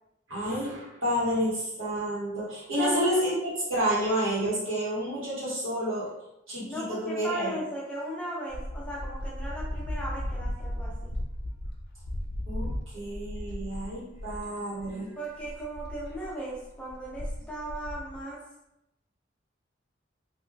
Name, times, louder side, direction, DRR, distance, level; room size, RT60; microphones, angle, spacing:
voice 1, 0.3-6.1 6.5-7.6 12.5-15.1, equal, 85° right, -7 dB, 1.4 m, -29 dB
voice 2, 2.8-3.2 6.6-11.1 15.2-18.4, right 1 dB, 5° left, -5 dB, 0.6 m, -37 dB
sound 1, 8.5-14.5 14.8-14.9 15.2-18.2, equal, 55° left, 0.4 m, -36 dB
3.4 x 2.7 x 2.3 m, 0.88 s
head